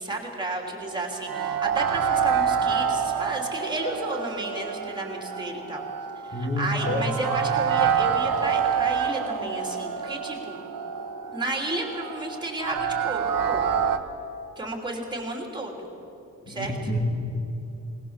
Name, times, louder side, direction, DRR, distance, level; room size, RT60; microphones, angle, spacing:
voice 1, 0.0-5.8 6.2-10.6 11.3-13.6 14.6-15.8 16.5-16.8, right 2 dB, 15° right, 2 dB, 2.9 m, -32 dB
sound 1, 0.7-14.0, right 7 dB, 80° right, 1.3 m, -27 dB
voice 2, 6.3-7.1 16.5-17.2, left 1 dB, 30° left, 3 dB, 2.3 m, -28 dB
20.5 x 20.0 x 7.2 m, 2.9 s
wide cardioid pair, 180°, 33 cm